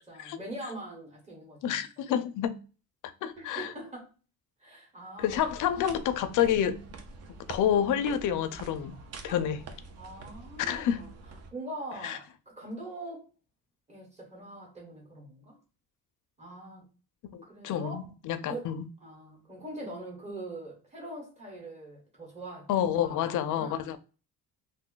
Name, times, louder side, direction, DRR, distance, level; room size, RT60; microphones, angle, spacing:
voice 1, 0.1-1.8 2.1-2.3 3.4-4.1 4.6-5.4 5.8-6.0 9.2-9.4 10.0-11.1 11.5-13.3 13.9-15.6 16.4-16.9 17.4-18.1 18.5-18.7 19.0-23.9, right 1 dB, 20° right, 1.1 m, -43 dB
voice 2, 1.6-2.6 3.2-3.7 5.2-6.8 7.5-8.9 9.2-9.6 10.6-11.0 12.0-12.2 17.3-18.9 22.7-24.0, left 9 dB, 60° left, 0.4 m, -28 dB
sound 1, 5.2-11.5, right 3 dB, 45° right, 0.5 m, -46 dB
2.6 x 2.3 x 3.8 m
cardioid pair, 165°, 36 cm